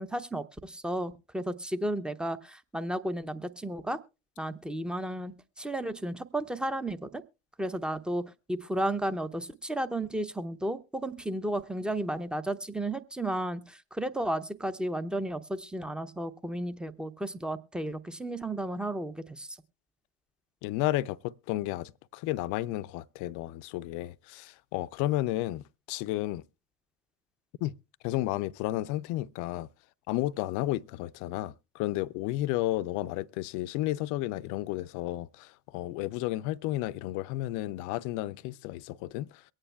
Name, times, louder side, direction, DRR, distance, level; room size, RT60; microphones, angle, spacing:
voice 1, 0.0-4.0 4.4-7.2 7.6-19.6, right 1 dB, ahead, 0.6 m, -33 dB
voice 2, 20.6-26.4 27.6-27.7 28.0-29.7 30.1-39.4, left 16 dB, 55° left, 0.5 m, -32 dB
23.0 x 8.8 x 2.2 m
figure-of-eight pair, 60°, 37 cm